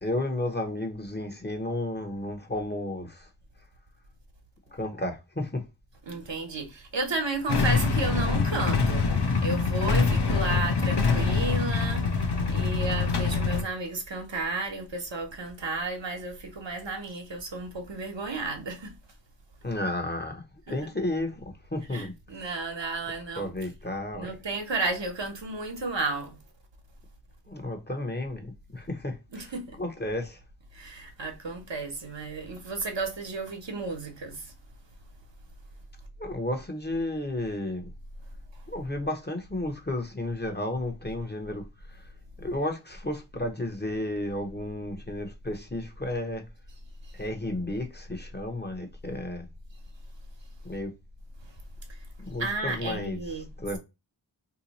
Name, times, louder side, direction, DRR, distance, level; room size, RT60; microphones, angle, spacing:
voice 1, 0.0-3.3 4.7-5.6 19.6-22.5 23.4-24.3 27.5-30.4 36.2-37.9 38.7-42.1 42.4-46.4 47.1-49.5 50.6-50.9 52.2-53.8, left 1 dB, 25° left, 0.8 m, -33 dB
voice 2, 6.1-18.9 20.7-20.8 21.9-23.5 24.1-26.4 29.3-29.8 30.7-34.5 51.9-52.0 52.4-53.5, right 3 dB, 70° right, 1.0 m, -33 dB
Motorcycle / Engine starting / Idling, 7.5-13.6, left 4 dB, 60° left, 0.7 m, -24 dB
2.8 x 2.2 x 4.0 m
wide cardioid pair, 40°, 45 cm